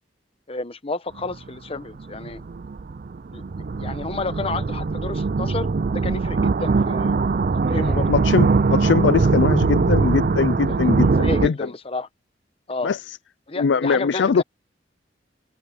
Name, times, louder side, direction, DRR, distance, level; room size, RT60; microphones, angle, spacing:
voice 1, 0.5-2.4 3.3-3.4 3.8-5.7 5.9-7.2 7.7-8.1 10.8-12.1 12.7-12.9 13.5-14.4, left 3 dB, 35° left, 0.9 m, -30 dB
sound 1, 1.2-1.3 2.0-11.5, right 4 dB, 50° right, 0.5 m, -21 dB
voice 2, 8.1-11.6 12.8-13.0 13.6-14.4, left 5 dB, 80° left, 0.4 m, -21 dB
head